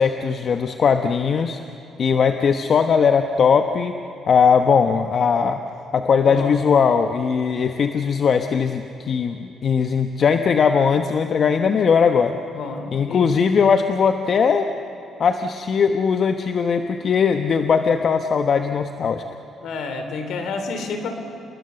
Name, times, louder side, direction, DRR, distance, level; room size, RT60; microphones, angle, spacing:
voice 1, 0.0-1.6 2.0-4.0 4.3-5.6 5.9-12.4 12.9-14.7 15.2-19.2, left 6 dB, 55° left, 7 dB, 1.0 m, -19 dB
voice 2, 6.2-6.6 12.5-13.3 19.6-21.1, left 4 dB, 75° left, 6 dB, 3.3 m, -29 dB
28.5 x 20.0 x 7.0 m, 3.0 s
cardioid pair, 90°, 0 cm